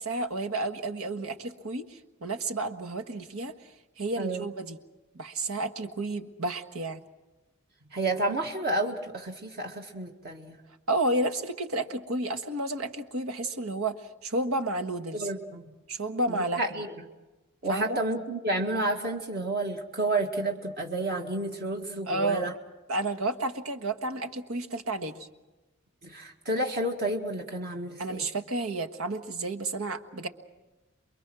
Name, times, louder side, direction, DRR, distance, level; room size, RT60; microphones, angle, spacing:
voice 1, 0.0-3.5 4.0-4.8 5.1-7.0 10.9-14.0 14.2-15.3 15.9-16.6 17.7-18.0 22.1-22.5 22.9-25.3 28.0-30.3, right 2 dB, 80° right, 8 dB, 1.5 m, -31 dB
voice 2, 4.2-4.5 7.9-10.6 15.1-15.7 16.3-16.9 17.6-22.5 26.0-28.3, right 2 dB, 50° right, 1 dB, 1.9 m, -30 dB
28.5 x 23.0 x 6.2 m, 1.1 s
head